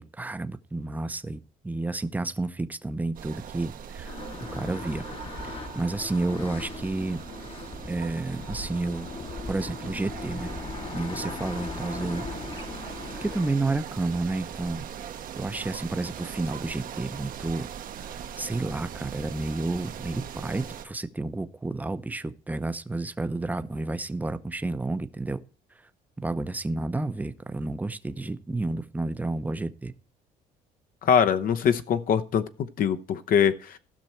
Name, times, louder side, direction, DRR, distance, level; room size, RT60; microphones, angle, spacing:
voice 1, 0.0-4.2 4.5-5.0 5.7-7.2 7.9-9.1 9.5-10.5 10.9-12.2 13.2-14.9 15.4-17.7 18.0-25.4 26.2-29.9, right 2 dB, 10° right, 12 dB, 0.7 m, -31 dB
sound 1, 3.1-20.8, right 8 dB, 55° right, 1.0 m, -40 dB
sound 2, 4.1-13.5, left 4 dB, 35° left, 1.1 m, -39 dB
voice 2, 31.0-32.4 32.8-33.8, left 8 dB, 55° left, 10 dB, 0.9 m, -23 dB
15.0 x 6.1 x 4.4 m, 0.37 s
cardioid pair, 110°, 17 cm